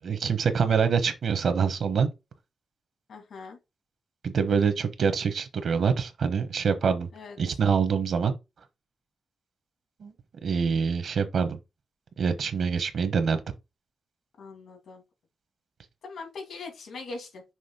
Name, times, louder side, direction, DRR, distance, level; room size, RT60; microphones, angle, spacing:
voice 1, 0.0-2.1 4.2-7.1 7.4-8.3 10.0-10.1 10.4-11.6 12.2-13.4, right 6 dB, 75° right, 1.0 m, -25 dB
voice 2, 3.1-3.6 7.1-7.4 14.4-15.0 16.0-17.4, left 3 dB, 80° left, 2.6 m, -41 dB
6.2 x 3.0 x 5.6 m
wide cardioid pair, 110°, 0 cm